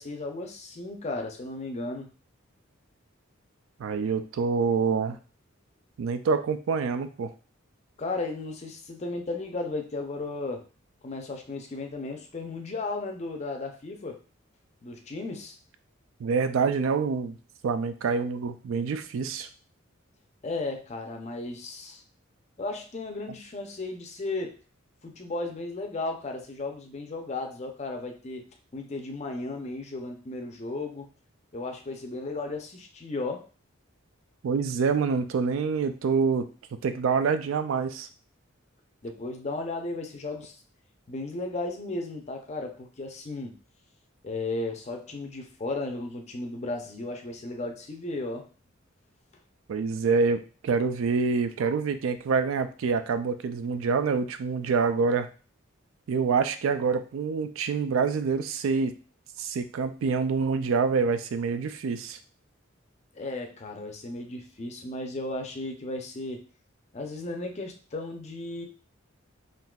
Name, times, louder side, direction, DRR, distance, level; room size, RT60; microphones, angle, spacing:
voice 1, 0.0-2.1 8.0-10.7 11.0-14.2 14.8-15.6 20.4-22.0 22.6-24.6 25.0-28.4 28.7-31.1 31.5-33.4 39.0-40.6 41.1-43.6 44.2-48.5 63.1-66.4 66.9-68.7, left 2 dB, 35° left, 3 dB, 0.5 m, -35 dB
voice 2, 3.8-5.2 6.0-7.3 16.2-17.4 17.6-19.5 34.4-36.5 36.8-38.1 49.7-55.3 56.1-58.9 59.4-62.2, right 5 dB, 70° right, 10 dB, 0.3 m, -26 dB
3.7 x 2.7 x 2.3 m, 0.36 s
head